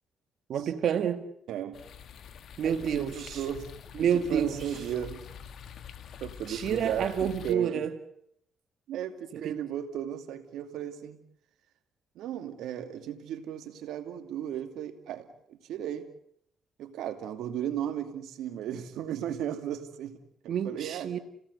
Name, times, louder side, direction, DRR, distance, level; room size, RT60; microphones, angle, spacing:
voice 1, 0.5-1.2 2.6-3.4 4.0-4.7 6.5-7.9 9.3-9.6 20.5-21.2, right 8 dB, 65° right, 9 dB, 1.6 m, -29 dB
voice 2, 1.5-1.8 2.6-3.7 4.0-5.5 6.2-7.8 8.9-11.2 12.2-16.1 16.8-21.1, right 10 dB, 85° right, 7 dB, 2.5 m, -36 dB
sound 1, 1.7-7.6, left 8 dB, 65° left, 1.5 m, -46 dB
30.0 x 18.0 x 8.2 m, 0.73 s
cardioid pair, 90°, 0 cm